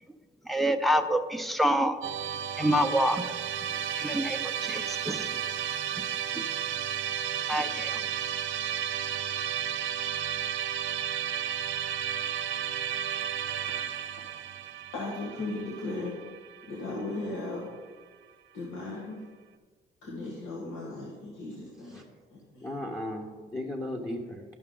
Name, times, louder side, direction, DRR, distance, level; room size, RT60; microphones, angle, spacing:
voice 1, 0.5-2.0 2.6-3.2 4.0-5.3 7.5-8.0, equal, ahead, 5 dB, 0.6 m, -27 dB
Musical instrument, 2.0-17.2, right 9 dB, 85° right, 0.6 m, -33 dB
voice 2, 14.9-16.2 16.7-17.7 18.5-19.2 20.0-22.0 22.3-22.7, left 2 dB, 85° left, -4 dB, 1.7 m, -36 dB
voice 3, 22.6-24.4, left 1 dB, 15° left, -2 dB, 1.1 m, -36 dB
12.5 x 5.6 x 3.9 m, 1.4 s
cardioid pair, 90°, 20 cm